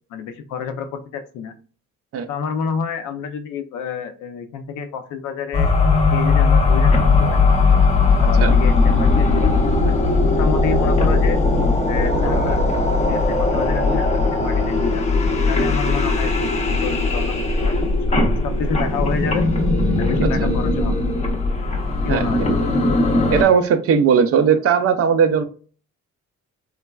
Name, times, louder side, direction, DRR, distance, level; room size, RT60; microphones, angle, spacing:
voice 1, 0.1-1.5 2.3-5.7 6.0-6.9 7.2-7.5 8.2-9.5 9.8-10.0 10.3-11.4 11.9-12.6 13.1-15.0 15.5-19.4 20.0-21.1 22.0-22.6, left 6 dB, 90° left, 0.5 m, -29 dB
sound 1, 5.5-23.4, left 3 dB, 20° left, 0.5 m, -18 dB
voice 2, 23.3-25.4, right 7 dB, 50° right, 0.4 m, -17 dB
3.2 x 2.2 x 2.2 m
cardioid pair, 90°, 30 cm